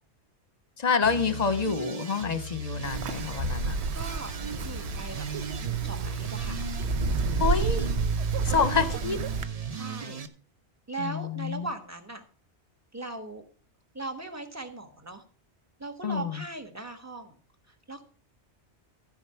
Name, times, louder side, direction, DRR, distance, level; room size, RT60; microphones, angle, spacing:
voice 1, 0.8-3.8 7.4-7.9 8.4-9.2 11.0-11.7 16.0-16.4, left 5 dB, 40° left, 12 dB, 0.9 m, -27 dB
sound 1, 1.0-10.3, right 4 dB, 35° right, 0.8 m, -34 dB
Wind, 2.8-9.4, right 4 dB, 70° right, 1.0 m, -31 dB
voice 2, 3.9-4.3 4.6-5.3 5.6-6.6 8.4-8.8 9.7-10.2 10.9-12.2 12.9-13.4 13.9-15.2 15.8-17.4 17.7-18.0, right 2 dB, 15° right, 6 dB, 1.3 m, -39 dB
15.0 x 5.2 x 5.7 m, 0.40 s
omnidirectional pair, 1.2 m